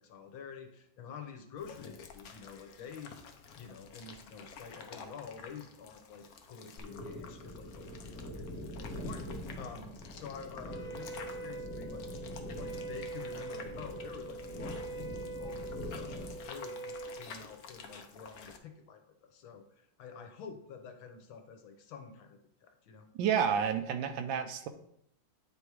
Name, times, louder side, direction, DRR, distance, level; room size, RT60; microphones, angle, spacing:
voice 1, 0.0-3.1 3.5-12.1 12.6-23.1, left 6 dB, 80° left, 6 dB, 1.7 m, -48 dB
sound 1, 1.6-18.6, left 6 dB, 60° left, 1.0 m, -51 dB
sound 2, 6.8-16.4, left 1 dB, 40° left, 1.7 m, -44 dB
Wind instrument woodwind instrument, 10.6-17.3, right 3 dB, ahead, 1.7 m, -43 dB
voice 2, 23.2-24.7, right 7 dB, 75° right, 8 dB, 1.4 m, -30 dB
9.6 x 3.5 x 4.7 m, 0.71 s
omnidirectional pair, 2.2 m